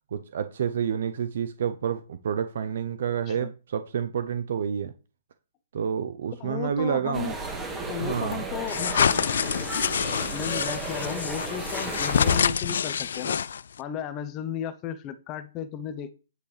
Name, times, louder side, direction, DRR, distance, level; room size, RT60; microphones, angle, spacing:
voice 1, 0.1-4.9 5.7-7.3 8.0-8.5, right 7 dB, 60° right, 0.7 m, -29 dB
voice 2, 6.4-7.4 7.9-9.1 10.3-13.4 13.8-16.1, left 9 dB, 25° left, 0.9 m, -34 dB
sound 1, 7.1-12.4, right 3 dB, 10° right, 1.8 m, -34 dB
sound 2, 8.7-13.8, left 7 dB, 70° left, 0.3 m, -26 dB
9.5 x 7.9 x 3.4 m
hypercardioid pair, 155°, 0 cm